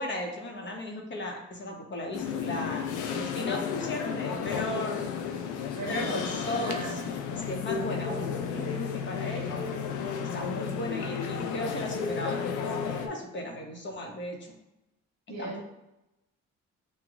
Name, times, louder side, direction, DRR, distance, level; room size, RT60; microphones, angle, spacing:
voice 1, 0.0-5.1 5.9-6.9 7.3-9.6 10.3-14.5 15.4-15.5, left 1 dB, 40° left, 1 dB, 0.9 m, -36 dB
sound 1, 2.1-13.1, left 7 dB, 80° left, 0.5 m, -33 dB
voice 2, 5.7-7.0 15.3-15.6, right 3 dB, 60° right, -1 dB, 1.1 m, -38 dB
6.0 x 2.3 x 2.4 m, 0.92 s
cardioid pair, 90°, 30 cm